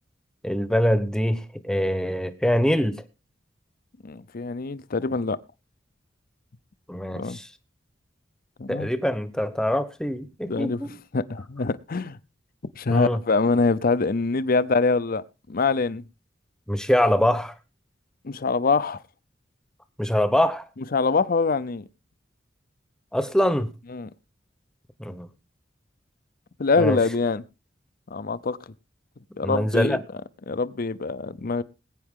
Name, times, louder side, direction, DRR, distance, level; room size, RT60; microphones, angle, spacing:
voice 1, 0.4-3.0 6.9-7.5 8.7-11.0 12.9-13.2 16.7-17.5 20.0-20.7 23.1-23.7 25.0-25.3 26.8-27.0 29.4-30.0, equal, 5° left, 1.0 m, -24 dB
voice 2, 4.0-5.4 7.2-7.4 8.6-8.9 10.5-10.8 11.1-12.2 12.8-16.0 18.2-19.0 20.9-21.8 23.9-24.1 26.6-27.4 28.1-28.6 29.4-30.0 30.5-31.6, left 4 dB, 50° left, 0.6 m, -24 dB
20.0 x 9.1 x 3.7 m
head